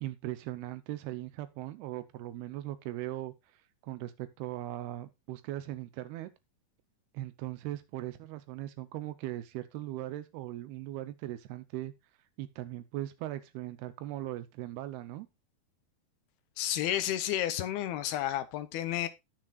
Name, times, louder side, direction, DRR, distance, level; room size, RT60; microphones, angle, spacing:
voice 1, 0.0-6.3 7.1-11.9 12.4-15.3, right 14 dB, 90° right, 2.8 m, -39 dB
voice 2, 16.6-19.1, left 12 dB, 80° left, 2.7 m, -31 dB
17.5 x 6.2 x 2.4 m
omnidirectional pair, 4.4 m